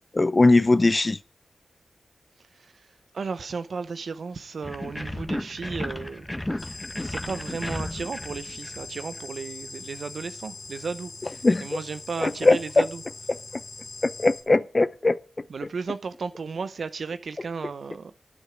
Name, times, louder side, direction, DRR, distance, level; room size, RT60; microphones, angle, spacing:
voice 1, 0.1-1.2 11.4-11.7 12.2-12.8 14.0-15.2, left 2 dB, 40° left, 0.5 m, -20 dB
voice 2, 2.5-2.9 3.1-6.7 7.0-13.0 15.5-18.1, right 5 dB, 75° right, 0.6 m, -34 dB
sound 1, 4.6-9.2, left 1 dB, 15° left, 1.2 m, -34 dB
sound 2, 6.6-14.4, left 3 dB, 70° left, 2.4 m, -41 dB
9.7 x 9.3 x 4.9 m
cardioid pair, 45°, 0 cm